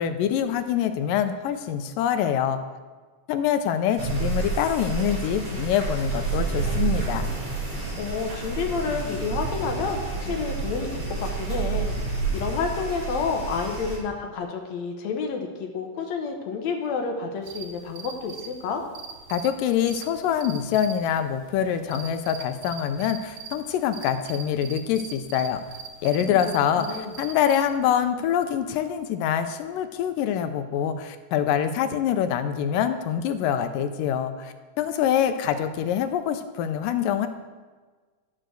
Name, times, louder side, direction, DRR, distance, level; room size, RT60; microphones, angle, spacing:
voice 1, 0.0-2.6 3.3-7.3 19.3-25.6 26.0-37.3, left 9 dB, 85° left, 9 dB, 2.2 m, -25 dB
sound 1, 4.0-14.0, right 4 dB, 40° right, 4.5 m, -29 dB
sound 2, 5.3-5.8 6.1-8.2 8.5-8.6 8.7-12.5 12.7-13.1, right 2 dB, 25° right, 1.4 m, -49 dB
voice 2, 8.0-18.8 26.2-26.4 26.8-27.1, left 5 dB, 65° left, 3 dB, 1.9 m, -30 dB
sound 3, 17.4-27.6, right 7 dB, 75° right, 2.4 m, -42 dB
11.5 x 6.8 x 6.3 m, 1.4 s
omnidirectional pair, 4.1 m